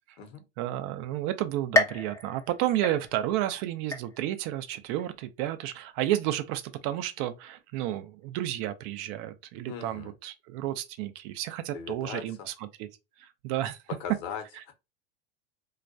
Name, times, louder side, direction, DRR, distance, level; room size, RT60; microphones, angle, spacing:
voice 1, 0.6-12.9 13.2-13.8, right 13 dB, 55° right, 0.5 m, -31 dB
sound 1, 1.7-3.5 3.9-4.5 5.0-5.1 6.1-6.2, left 2 dB, 10° left, 0.5 m, -30 dB
voice 2, 9.7-10.1 11.7-12.5 14.0-14.7, left 7 dB, 55° left, 0.9 m, -39 dB
2.3 x 2.1 x 2.6 m
hypercardioid pair, 100°, 31 cm